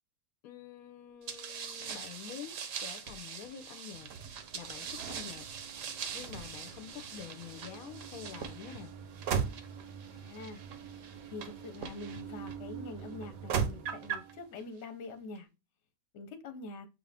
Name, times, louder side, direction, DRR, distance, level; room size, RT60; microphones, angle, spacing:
voice 1, 0.4-4.1 4.5-5.5 6.1-8.9, left 9 dB, 80° left, 1.0 m, -47 dB
sound 1, 1.3-12.5 13.2-14.3, right 7 dB, 65° right, 1.0 m, -39 dB
sound 2, 4.2-14.6, right 8 dB, 85° right, 1.1 m, -48 dB
voice 2, 10.1-10.6 11.3-15.5 16.1-16.9, left 3 dB, 55° left, 1.0 m, -45 dB
6.5 x 2.5 x 3.2 m
omnidirectional pair, 1.5 m